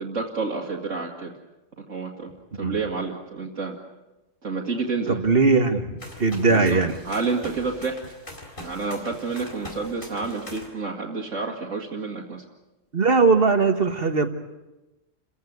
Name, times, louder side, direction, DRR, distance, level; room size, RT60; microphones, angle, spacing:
voice 1, 0.0-1.3 1.9-3.8 4.4-5.2 6.5-8.0 8.6-12.4, right 4 dB, 85° right, -2 dB, 2.4 m, -29 dB
voice 2, 5.1-5.9 6.2-6.9 12.9-14.3, right 4 dB, 50° right, 7 dB, 1.6 m, -19 dB
sound 1, 6.0-10.7, left 1 dB, 45° left, 4.4 m, -42 dB
29.0 x 16.0 x 9.4 m, 1.0 s
omnidirectional pair, 1.3 m